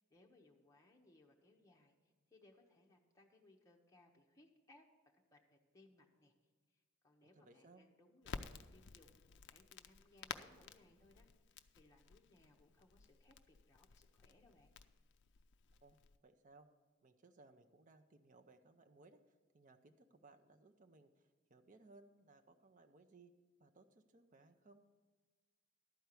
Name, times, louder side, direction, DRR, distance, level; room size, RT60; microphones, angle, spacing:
voice 1, 0.0-4.9 5.1-6.3 6.7-9.2 9.5-14.7, left 2 dB, 15° left, -1 dB, 0.9 m, -68 dB
voice 2, 7.3-7.8 15.8-16.7 17.0-19.2 19.5-23.3 23.6-24.9, right 3 dB, 35° right, 6 dB, 0.6 m, -64 dB
Crackle, 8.2-16.2, left 6 dB, 55° left, 0.4 m, -54 dB
11.5 x 4.5 x 8.2 m, 1.4 s
head